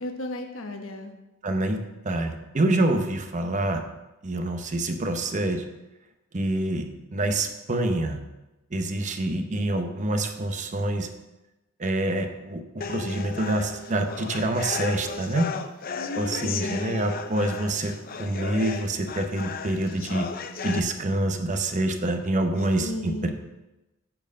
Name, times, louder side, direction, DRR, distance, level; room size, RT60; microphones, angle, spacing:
voice 1, 0.0-1.1 15.9-16.9 22.8-23.3, left 1 dB, 75° left, 4 dB, 1.1 m, -34 dB
voice 2, 1.4-1.8 2.0-3.8 4.2-5.6 6.3-8.2 8.7-11.1 11.8-15.5 16.1-17.9 18.2-20.3 20.6-23.3, right 1 dB, 35° right, 6 dB, 0.8 m, -26 dB
sound 1, 12.8-20.8, left 5 dB, 45° left, 0.5 m, -35 dB
8.7 x 4.6 x 6.3 m, 1.0 s
head